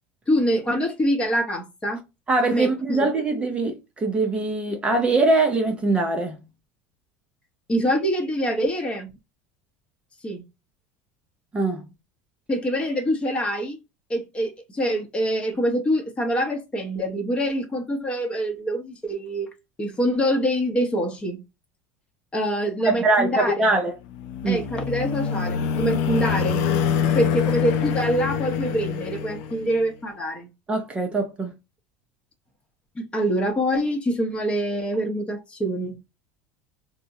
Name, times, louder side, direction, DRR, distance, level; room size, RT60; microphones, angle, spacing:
voice 1, 0.3-2.0 2.5-3.0 7.7-9.1 10.2-10.4 12.5-13.8 14.1-19.5 19.8-21.4 22.3-23.6 24.5-26.6 27.1-30.5 33.0-36.0, equal, 20° left, 0.8 m, -25 dB
voice 2, 2.3-6.4 11.5-11.8 22.8-24.0 24.4-24.6 30.7-31.5, right 2 dB, 20° right, 0.5 m, -22 dB
sound 1, 24.1-29.9, left 7 dB, 65° left, 0.5 m, -25 dB
3.5 x 2.1 x 2.6 m
supercardioid pair, 135°, 6 cm